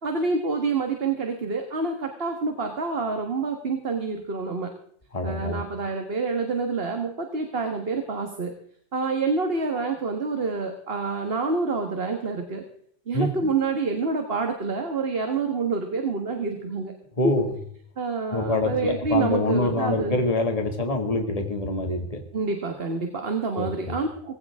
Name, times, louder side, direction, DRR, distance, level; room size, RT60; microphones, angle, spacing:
voice 1, 0.0-4.7 5.2-8.5 8.9-12.6 13.1-16.9 17.2-17.3 18.0-20.2 22.3-24.4, right 4 dB, 55° right, 4 dB, 1.8 m, -27 dB
voice 2, 5.1-5.6 13.1-13.5 17.2-17.6 18.3-22.2 23.6-23.9, left 2 dB, 30° left, 4 dB, 2.1 m, -26 dB
19.5 x 16.5 x 3.6 m, 0.64 s
omnidirectional pair, 1.2 m